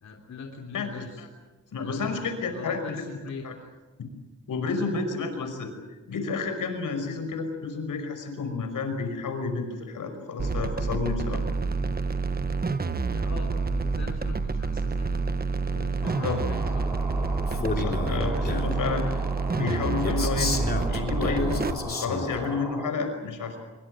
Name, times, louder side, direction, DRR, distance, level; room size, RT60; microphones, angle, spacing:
voice 1, 0.0-1.2 1.8-3.4 13.1-15.2 15.7-17.4, left 4 dB, 60° left, 1 dB, 3.5 m, -41 dB
voice 2, 0.7-1.3 1.7-3.0 3.4-3.5 4.5-5.7 6.1-11.4 16.2-16.3 17.5-19.1 19.5-20.6 20.9-23.6, left 4 dB, 85° left, 7 dB, 5.6 m, -30 dB
sound 1, 10.4-21.7, right 4 dB, 30° right, 1.2 m, -28 dB
sound 2, 16.0-22.9, equal, 10° right, 6.4 m, -38 dB
Male speech man speaking, 17.5-18.8 20.0-22.5, left 3 dB, 30° left, 3.3 m, -31 dB
25.0 x 23.5 x 7.9 m, 1.2 s
wide cardioid pair, 115°, 31 cm